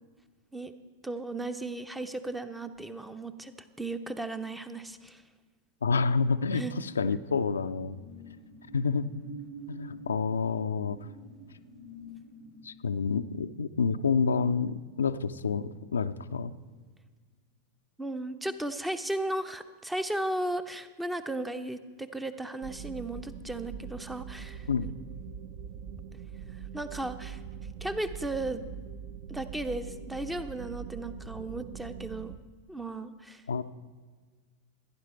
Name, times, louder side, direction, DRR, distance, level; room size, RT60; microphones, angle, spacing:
voice 1, 1.0-5.2 6.5-6.7 18.0-24.7 26.7-27.4 27.8-28.6 29.3-32.3 32.7-33.4, right 1 dB, 5° right, 10 dB, 0.7 m, -35 dB
voice 2, 5.8-8.0 8.7-9.1 9.7-11.0 12.6-16.5 24.7-24.9 33.5-33.6, left 5 dB, 70° left, 9 dB, 0.5 m, -28 dB
sound 1, 7.7-15.9 16.3-16.5, right 1 dB, 75° right, 5.0 m, -49 dB
sound 2, 22.6-32.4, right 7 dB, 45° right, 0.6 m, -42 dB
16.5 x 10.0 x 4.4 m, 1.5 s
figure-of-eight pair, 90°, 0 cm